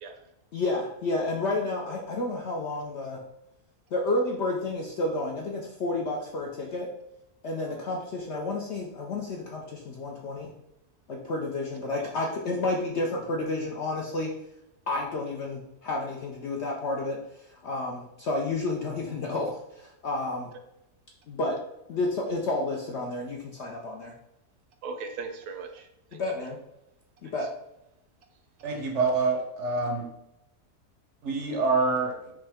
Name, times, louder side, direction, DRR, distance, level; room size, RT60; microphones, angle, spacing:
voice 1, 0.5-3.2 3.9-6.9 7.4-10.5 11.1-14.3 14.9-20.5 21.3-21.6 21.9-24.1 26.1-26.6 27.2-27.5, left 2 dB, 65° left, -1 dB, 0.7 m, -31 dB
voice 2, 7.5-7.9 8.2-8.4 12.0-12.1 24.8-26.2, right 4 dB, 75° right, 6 dB, 1.1 m, -40 dB
voice 3, 28.6-30.1 31.2-32.1, right 4 dB, 60° right, 2 dB, 0.8 m, -26 dB
5.3 x 2.8 x 3.5 m, 0.86 s
omnidirectional pair, 1.7 m